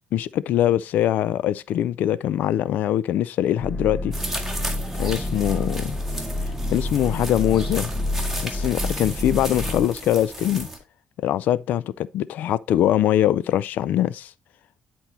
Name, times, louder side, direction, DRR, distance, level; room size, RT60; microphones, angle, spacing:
voice 1, 0.1-4.1 5.0-6.0 6.7-7.9 8.4-10.7 11.2-14.3, left 12 dB, 85° left, 0.3 m, -22 dB
sound 1, 3.6-9.9, left 2 dB, 15° left, 0.7 m, -29 dB
sound 2, 4.1-10.8, right 1 dB, 5° right, 1.9 m, -34 dB
10.0 x 4.5 x 3.9 m
cardioid pair, 125°, 3 cm